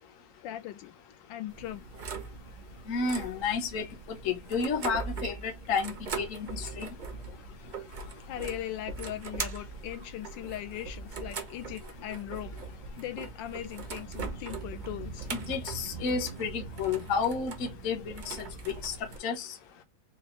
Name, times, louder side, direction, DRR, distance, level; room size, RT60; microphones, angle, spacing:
voice 1, 0.4-0.9 1.3-1.8 8.3-12.6 13.0-15.3, left 12 dB, 85° left, 1.3 m, -39 dB
sound 1, 1.5-19.2, right 4 dB, 85° right, 0.4 m, -40 dB
voice 2, 2.9-6.9 15.3-18.9 19.2-19.5, left 5 dB, 50° left, 1.1 m, -31 dB
4.1 x 2.6 x 3.0 m
omnidirectional pair, 2.0 m